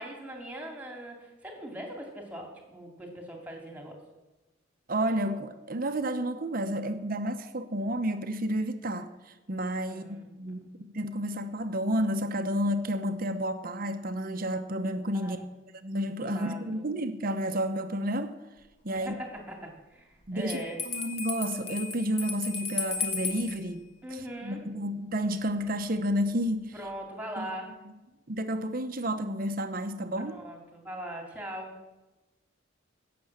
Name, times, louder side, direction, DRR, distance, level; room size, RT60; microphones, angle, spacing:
voice 1, 0.0-4.0 9.8-10.5 15.1-15.3 16.3-16.9 18.9-20.8 24.0-24.6 26.7-27.7 30.3-31.8, equal, 5° right, 1 dB, 2.4 m, -41 dB
voice 2, 4.9-15.4 15.8-18.4 18.8-19.1 20.3-23.8 24.4-26.7 27.4-27.5 27.8-27.9 28.3-30.4, equal, 45° right, 8 dB, 0.9 m, -31 dB
Bell, 20.5-23.6, left 5 dB, 30° left, 1.6 m, -34 dB
17.0 x 7.0 x 7.2 m, 1.1 s
head